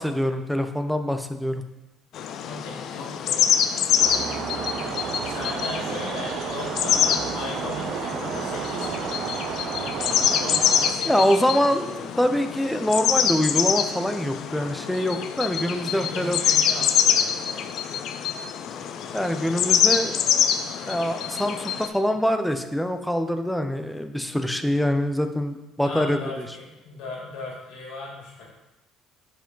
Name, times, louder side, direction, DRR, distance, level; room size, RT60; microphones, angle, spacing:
voice 1, 0.0-1.6 11.1-16.4 19.1-20.1 20.9-26.5, equal, 5° left, 7 dB, 0.5 m, -24 dB
sound 1, 2.1-21.9, left 8 dB, 60° left, 0.4 m, -25 dB
voice 2, 2.4-4.6 5.2-8.9 10.0-11.5 11.9-12.3 14.5-14.7 15.8-17.8 18.7-20.6 22.1-22.2 24.3-24.4 25.8-28.5, left 2 dB, 90° left, -3 dB, 2.3 m, -38 dB
sound 2, 4.0-10.9, right 7 dB, 60° right, 0.5 m, -31 dB
6.8 x 4.9 x 3.9 m, 0.99 s
cardioid pair, 120°, 0 cm